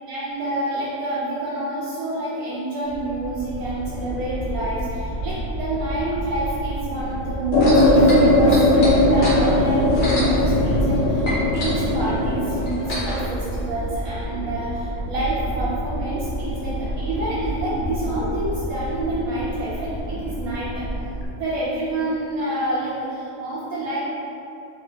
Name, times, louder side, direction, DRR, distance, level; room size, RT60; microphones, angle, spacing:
voice 1, 0.1-20.8 21.4-24.0, right 1 dB, 75° right, -9 dB, 1.2 m, -28 dB
sound 1, 2.8-21.3, right 1 dB, 60° left, 1.0 m, -30 dB
sound 2, 7.5-12.6, left 1 dB, 85° left, 1.1 m, -18 dB
sound 3, 7.5-11.0 11.2-13.3 14.0-14.1, equal, 35° left, 1.2 m, -30 dB
4.4 x 2.7 x 3.9 m, 2.8 s
omnidirectional pair, 1.5 m